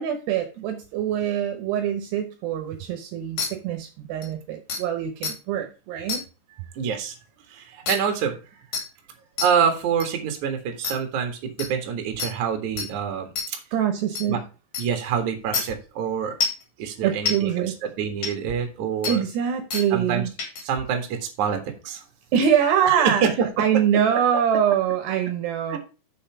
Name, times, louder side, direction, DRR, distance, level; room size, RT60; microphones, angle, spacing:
voice 1, 0.0-6.2 13.7-14.4 17.0-17.8 19.1-20.3 22.3-23.2 23.6-25.8, right 9 dB, 75° right, 6 dB, 2.8 m, -24 dB
sound 1, 3.4-3.5 4.2-4.3 4.7-4.8 5.2-5.3 6.1-6.2 7.9-8.0 8.7-8.8 9.4-9.5 10.0-10.1 10.8-10.9 11.6-11.7 12.2-12.3 12.8-12.9 13.4-13.5 14.1-14.2 14.7-14.8 15.5-15.6 16.4-16.6 17.3-17.4 18.2-18.3 19.0-19.1 19.7-19.8 20.4-20.6, left 5 dB, 45° left, 3.3 m, -26 dB
voice 2, 6.7-7.1 7.5-8.4 8.7-8.8 9.4-13.6 14.3-14.4 14.8-16.4 16.8-19.2 19.9-20.2 20.6-22.0 22.8-23.8 25.7-25.8, right 7 dB, 55° right, 5 dB, 2.3 m, -26 dB
6.6 x 5.5 x 5.8 m, 0.32 s
omnidirectional pair, 5.3 m